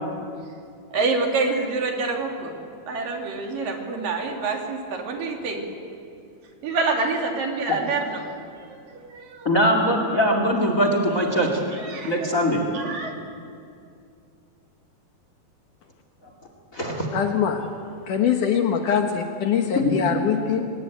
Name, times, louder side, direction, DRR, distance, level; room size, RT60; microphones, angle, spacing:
voice 1, 0.9-2.5 2.9-5.7 6.6-8.3 8.7-9.5 11.8-12.3 12.7-13.1, right 3 dB, 60° right, 2 dB, 4.2 m, -27 dB
voice 2, 9.4-11.6 12.0-12.6 16.7-17.1 19.8-19.9, equal, 25° left, 3 dB, 2.4 m, -21 dB
voice 3, 17.1-17.6 18.1-20.7, left 7 dB, 65° left, 4 dB, 2.5 m, -23 dB
24.0 x 20.0 x 9.3 m, 2.4 s
omnidirectional pair, 4.4 m